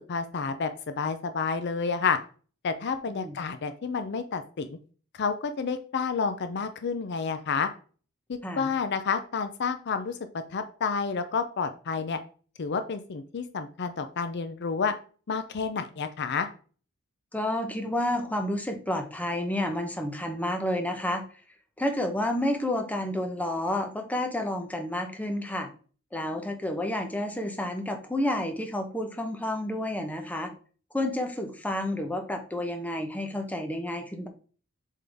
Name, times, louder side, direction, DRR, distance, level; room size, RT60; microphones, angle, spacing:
voice 1, 0.1-2.2 2.6-4.7 5.1-7.7 8.3-10.2 10.5-12.2 12.6-14.9 15.3-16.5, left 5 dB, 55° left, 9 dB, 0.5 m, -30 dB
voice 2, 17.3-21.2 21.8-25.7 26.1-30.5 30.9-34.3, left 1 dB, 5° left, 4 dB, 0.8 m, -30 dB
7.6 x 3.7 x 3.5 m, 0.40 s
head